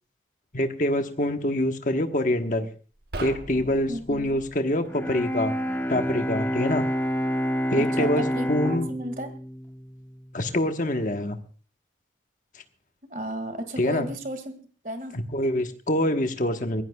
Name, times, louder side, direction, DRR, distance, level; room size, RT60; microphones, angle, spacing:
voice 1, 0.5-2.7 3.2-5.5 5.9-6.9 7.7-8.9 10.3-11.4 13.8-14.1 15.1-16.8, left 1 dB, 45° left, 6 dB, 1.2 m, -25 dB
sound 1, 2.9-4.6, right 2 dB, 65° right, 1.2 m, -39 dB
voice 2, 3.9-4.4 7.7-9.3 13.1-14.5 14.8-15.1, right 1 dB, 45° right, 8 dB, 2.1 m, -34 dB
Bowed string instrument, 4.9-10.9, equal, 10° left, 1.0 m, -29 dB
22.5 x 16.5 x 2.3 m, 0.39 s
head